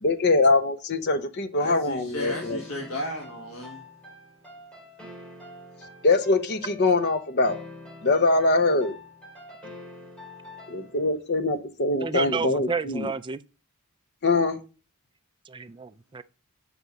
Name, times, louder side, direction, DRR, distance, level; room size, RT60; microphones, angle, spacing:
voice 1, 0.0-2.6 6.0-7.6 8.0-8.9 10.7-13.1 14.2-14.6, left 3 dB, 50° left, 0.9 m, -23 dB
voice 2, 1.6-3.8, left 1 dB, 90° left, 1.7 m, -34 dB
sound 1, 2.3-11.2, left 2 dB, 5° left, 2.9 m, -45 dB
voice 3, 12.0-13.4 15.5-16.2, right 5 dB, 20° right, 0.4 m, -31 dB
8.2 x 5.3 x 5.1 m
head